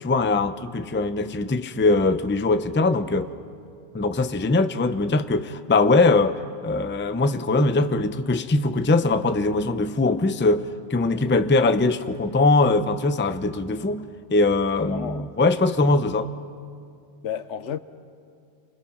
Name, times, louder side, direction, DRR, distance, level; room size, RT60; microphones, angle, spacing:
voice 1, 0.0-3.3 3.9-10.7 10.9-14.1 14.3-16.3, left 3 dB, 15° left, 0.5 m, -21 dB
voice 2, 11.0-11.5 14.8-15.3 17.2-17.8, left 8 dB, 80° left, 1.1 m, -33 dB
28.0 x 25.5 x 5.9 m
omnidirectional pair, 1.2 m